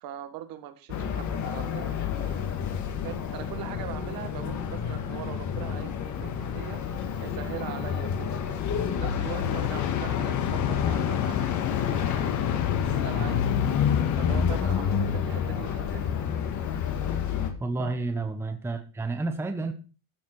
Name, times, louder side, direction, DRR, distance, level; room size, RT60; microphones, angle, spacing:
voice 1, 0.0-2.5 3.0-6.8 7.2-8.3 8.9-13.6 14.2-16.1 17.8-17.9, right 12 dB, 45° right, 9 dB, 1.8 m, -41 dB
sound 1, 0.9-17.5, left 7 dB, 35° left, 1.8 m, -29 dB
sound 2, 9.4-14.6, left 16 dB, 55° left, 0.7 m, -31 dB
voice 2, 17.6-19.7, right 3 dB, 5° right, 7 dB, 0.9 m, -30 dB
13.0 x 7.4 x 4.7 m, 0.34 s
cardioid pair, 150°, 47 cm